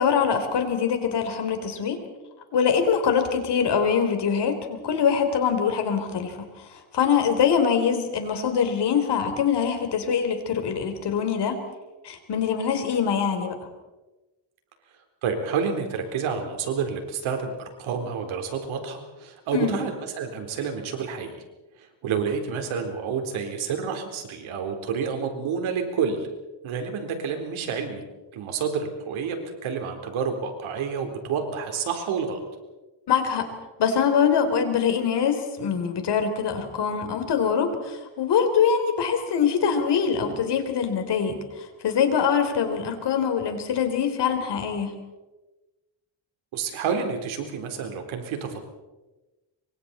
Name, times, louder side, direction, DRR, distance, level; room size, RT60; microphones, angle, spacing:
voice 1, 0.0-2.0 2.5-6.6 6.9-11.6 12.0-13.6 19.5-19.8 33.1-33.5 33.8-44.9, left 7 dB, 60° left, 6 dB, 3.8 m, -23 dB
voice 2, 15.2-21.4 21.8-26.3 26.6-28.0 28.3-32.4 46.5-48.6, right 6 dB, 85° right, 4 dB, 4.1 m, -29 dB
26.5 x 24.0 x 4.3 m, 1.1 s
cardioid pair, 125°, 47 cm